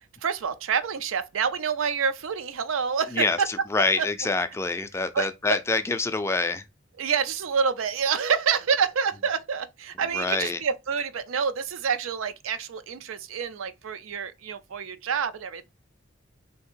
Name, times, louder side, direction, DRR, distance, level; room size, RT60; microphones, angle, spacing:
voice 1, 0.2-3.2 4.0-4.1 5.1-5.3 7.0-15.7, right 6 dB, 85° right, 0.5 m, -27 dB
voice 2, 3.1-6.6 10.1-10.6, left 3 dB, 15° left, 0.3 m, -26 dB
3.3 x 2.8 x 4.4 m
head